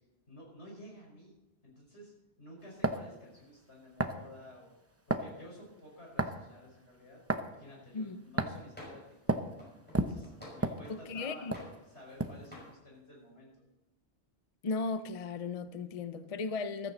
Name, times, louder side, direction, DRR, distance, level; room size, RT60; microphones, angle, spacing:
voice 1, 0.3-1.3 1.6-2.1 2.4-4.7 5.1-7.2 7.5-9.0 9.3-9.4 9.9-13.5, equal, 70° left, 5.5 m, -52 dB
sound 1, 2.8-3.1 4.0-4.2 5.1-5.3 6.2-6.5 7.3-7.5 8.4-8.7 9.3-9.5 9.9-11.2 11.5-11.7 12.2-12.5, right 2 dB, 15° right, 0.7 m, -31 dB
voice 2, 7.9-8.2 10.9-11.5 14.6-16.9, left 4 dB, 40° left, 0.6 m, -36 dB
sound 2, 8.8-9.2 9.6-11.1 11.5-12.2 12.5-12.8, left 1 dB, 10° left, 5.9 m, -51 dB
15.0 x 13.5 x 4.1 m
omnidirectional pair, 1.2 m